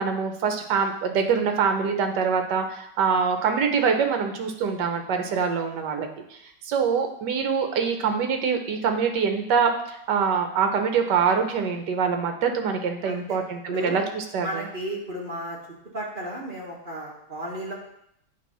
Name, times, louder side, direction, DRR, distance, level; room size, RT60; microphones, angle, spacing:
voice 1, 0.0-6.1 6.7-14.6, right 6 dB, 70° right, 5 dB, 1.4 m, -24 dB
voice 2, 13.0-13.4 13.7-14.0 14.4-15.6 15.9-17.7, right 1 dB, 30° right, -4 dB, 1.3 m, -33 dB
8.2 x 3.3 x 5.5 m, 0.75 s
omnidirectional pair, 2.0 m